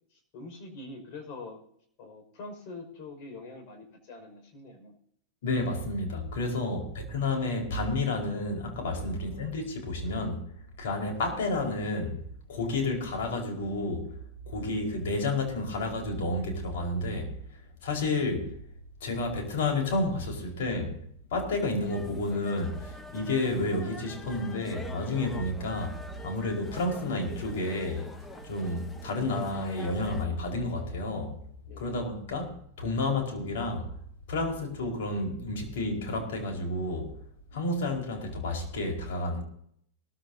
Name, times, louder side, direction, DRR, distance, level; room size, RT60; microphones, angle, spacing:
voice 1, 0.1-1.6 2.0-4.9 8.9-9.1 12.5-12.6 31.7-31.8, left 3 dB, 50° left, 5.5 m, -44 dB
voice 2, 5.4-10.4 10.8-12.2 12.5-14.1 14.5-17.4 17.8-18.5 19.0-21.0 21.3-28.1 28.4-31.4 31.8-33.9 34.3-37.2 37.5-39.4, left 2 dB, 65° left, 4.7 m, -30 dB
sound 1, 21.8-30.2, left 2 dB, 15° left, 1.6 m, -45 dB
20.0 x 14.0 x 2.8 m
hypercardioid pair, 105°, 0 cm